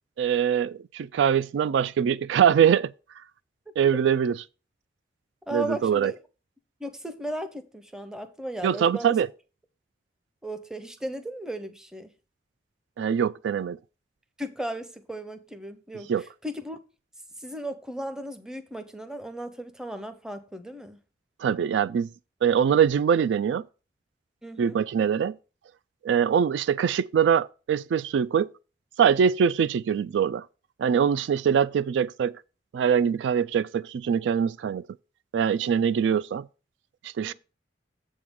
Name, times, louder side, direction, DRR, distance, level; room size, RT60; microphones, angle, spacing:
voice 1, 0.2-2.9 3.8-4.4 5.5-6.1 8.6-9.3 13.0-13.8 16.1-16.2 21.4-22.1 22.4-23.6 24.6-25.4 26.0-28.5 29.0-30.4 30.8-32.3 32.7-34.8 35.3-36.5 37.0-37.3, right 7 dB, 90° right, 0.3 m, -23 dB
voice 2, 5.5-6.2 6.8-9.2 10.4-12.1 14.4-16.8 17.4-21.0 24.4-24.8 37.2-37.3, right 1 dB, 5° right, 0.6 m, -36 dB
7.6 x 3.7 x 6.1 m
head